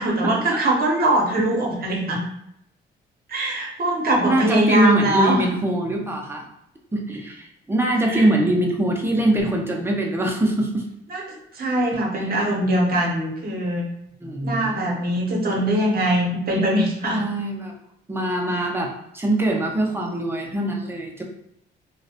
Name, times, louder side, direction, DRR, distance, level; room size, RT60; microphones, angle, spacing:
voice 1, 0.0-2.2 3.3-5.4 8.0-8.3 11.1-13.9 14.4-17.2, right 1 dB, 50° right, -1 dB, 0.8 m, -22 dB
voice 2, 4.2-6.4 6.9-10.9 12.2-12.3 14.2-15.0 17.1-17.7 18.1-21.2, right 1 dB, 10° right, 0 dB, 0.5 m, -23 dB
2.2 x 2.0 x 2.7 m, 0.78 s
cardioid pair, 90°, 20 cm